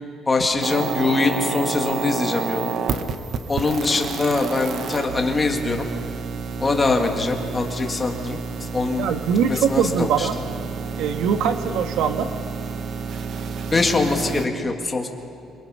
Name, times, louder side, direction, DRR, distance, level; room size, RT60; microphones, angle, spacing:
voice 1, 0.3-2.7 3.5-5.9 6.6-9.1 9.5-10.3 13.7-15.1, left 3 dB, 15° left, 2 dB, 1.9 m, -23 dB
sound 1, 0.6-14.5, right 6 dB, 50° right, 1.1 m, -30 dB
voice 2, 9.0-10.4 11.0-12.3, right 7 dB, 85° right, 7 dB, 1.5 m, -22 dB
27.0 x 22.5 x 5.6 m, 2.7 s
cardioid pair, 170°, 0 cm